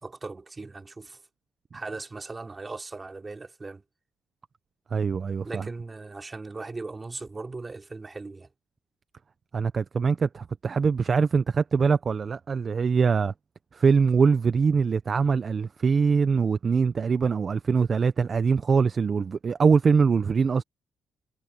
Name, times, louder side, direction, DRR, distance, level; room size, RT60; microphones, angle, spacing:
voice 1, 0.0-1.2 1.7-3.8 5.4-8.5, right 3 dB, 25° right, 3.3 m, -38 dB
voice 2, 4.9-5.7 9.5-13.3 13.7-20.6, right 5 dB, 40° right, 0.7 m, -23 dB
cardioid pair, 90°, 0 cm